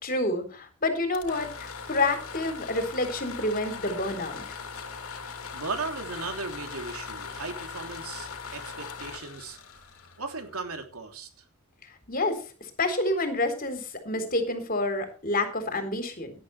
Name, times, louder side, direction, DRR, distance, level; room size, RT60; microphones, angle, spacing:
voice 1, 0.0-4.6 12.1-12.4 12.8-16.3, left 2 dB, 40° left, 3.9 m, -28 dB
sound 1, 1.0-10.8, left 5 dB, 75° left, 2.7 m, -40 dB
voice 2, 5.5-9.6 10.2-11.3, right 4 dB, 90° right, 3.3 m, -36 dB
18.0 x 11.5 x 3.3 m
head